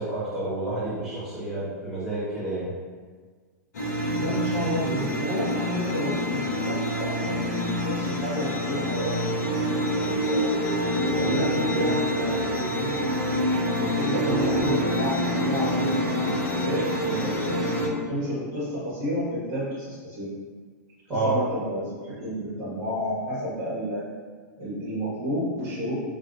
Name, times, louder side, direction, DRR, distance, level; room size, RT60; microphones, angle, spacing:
voice 1, 0.0-2.7 21.1-21.4, right 2 dB, 5° right, -12 dB, 1.5 m, -29 dB
sound 1, 3.7-17.9, equal, 75° left, 1.0 m, -26 dB
voice 2, 4.1-10.5 10.8-13.0 13.7-16.3 16.6-17.5 17.8-20.3 21.1-24.0 24.6-25.9, equal, 55° right, -11 dB, 1.4 m, -31 dB
3.1 x 2.7 x 2.6 m, 1.5 s
hypercardioid pair, 110°, 10 cm